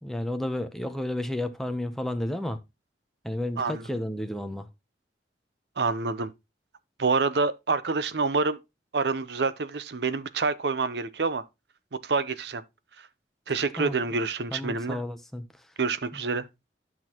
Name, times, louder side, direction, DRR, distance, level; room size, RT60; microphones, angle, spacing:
voice 1, 0.0-2.6 3.2-4.7 13.8-14.0 14.5-15.4, left 1 dB, ahead, 0.8 m, -31 dB
voice 2, 5.8-6.3 7.0-8.6 8.9-11.4 12.0-12.6 13.5-15.0 15.8-16.5, right 4 dB, 70° right, 0.7 m, -27 dB
11.0 x 6.1 x 3.0 m
head